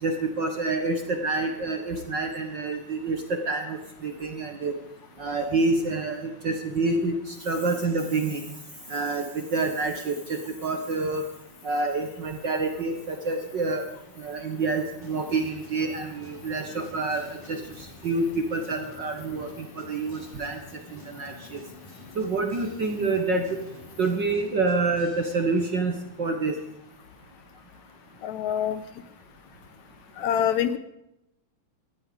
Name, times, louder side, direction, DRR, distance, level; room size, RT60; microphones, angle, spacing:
voice 1, 0.0-4.8 5.2-8.4 8.9-11.2 11.6-13.8 14.2-21.6 22.1-23.6 24.0-26.6, right 3 dB, 45° right, 5 dB, 1.6 m, -28 dB
sound 1, 15.0-25.7, left 3 dB, 15° left, 3.1 m, -47 dB
voice 2, 28.2-28.8 30.2-30.8, left 10 dB, 75° left, 13 dB, 1.9 m, -25 dB
17.5 x 13.5 x 5.1 m, 0.85 s
omnidirectional pair, 3.6 m